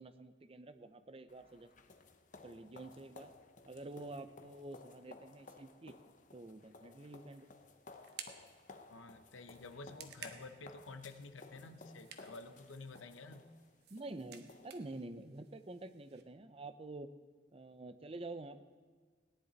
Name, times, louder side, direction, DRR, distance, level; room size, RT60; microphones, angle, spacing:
voice 1, 0.0-1.7 2.4-3.3 3.6-6.0 6.3-7.5 13.9-17.1 17.5-18.6, right 2 dB, 30° right, 11 dB, 0.6 m, -48 dB
Schritte hallig schnell, 1.3-15.0, left 3 dB, 40° left, 0.8 m, -58 dB
sound 1, 7.0-16.2, right 7 dB, 55° right, 1.0 m, -57 dB
voice 2, 8.9-13.5, left 3 dB, 85° left, 9 dB, 0.8 m, -51 dB
18.0 x 10.5 x 4.0 m, 1.5 s
head